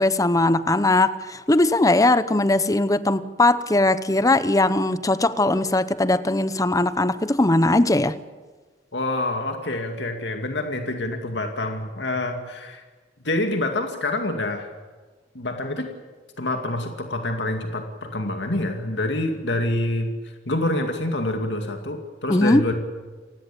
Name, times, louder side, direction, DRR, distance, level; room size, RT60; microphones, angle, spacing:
voice 1, 0.0-8.2 22.3-22.6, left 2 dB, 20° left, 14 dB, 0.9 m, -20 dB
voice 2, 8.9-12.8 13.2-14.7 15.3-15.9 16.4-20.1 20.5-22.7, left 1 dB, 80° left, 4 dB, 2.4 m, -26 dB
29.0 x 16.0 x 8.5 m, 1.4 s
head